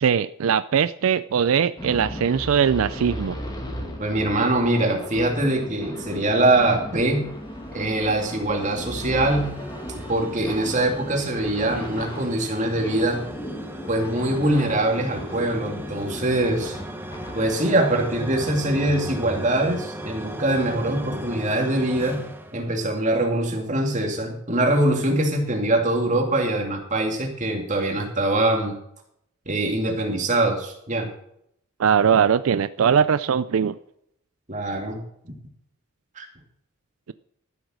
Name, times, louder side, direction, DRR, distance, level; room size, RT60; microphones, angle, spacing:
voice 1, 0.0-3.4 31.8-33.8, right 7 dB, 85° right, 15 dB, 0.4 m, -20 dB
sound 1, 1.8-17.8, equal, 20° left, 2.4 m, -36 dB
voice 2, 4.0-7.2 7.7-9.6 10.1-13.2 13.9-16.8 17.3-22.2 22.5-28.7 29.5-31.1 32.1-32.2 34.5-35.0 36.2-36.3, right 1 dB, 35° right, 2 dB, 2.5 m, -23 dB
sound 2, 7.3-23.4, equal, 10° right, 1.1 m, -37 dB
13.5 x 8.0 x 6.3 m, 0.73 s
head